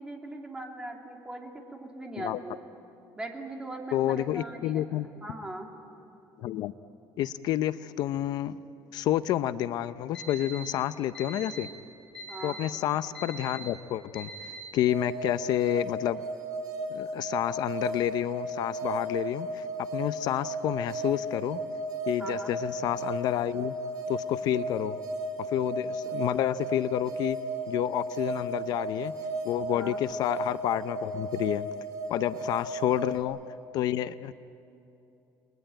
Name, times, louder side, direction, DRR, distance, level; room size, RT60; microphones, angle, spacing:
voice 1, 0.0-2.6 3.2-5.7 12.3-12.6 22.2-22.5 29.7-30.0 32.3-32.4, right 1 dB, 10° right, 1 dB, 2.7 m, -40 dB
voice 2, 3.9-5.1 6.4-6.7 7.2-8.6 8.9-11.7 12.4-16.2 16.9-19.6 19.9-21.6 22.1-23.7 24.1-25.0 25.5-27.4 27.7-29.1 29.4-31.7 32.1-33.4 33.7-34.3, left 12 dB, 65° left, 13 dB, 0.6 m, -29 dB
Alarm, 10.1-10.6 11.1-11.6 12.1-12.6 13.1-13.6 14.1-14.6, left 1 dB, 10° left, 7.4 m, -42 dB
sound 1, 14.9-33.2, right 2 dB, 55° right, 4.6 m, -35 dB
30.0 x 21.5 x 9.1 m, 2.8 s
cardioid pair, 170°, 7 cm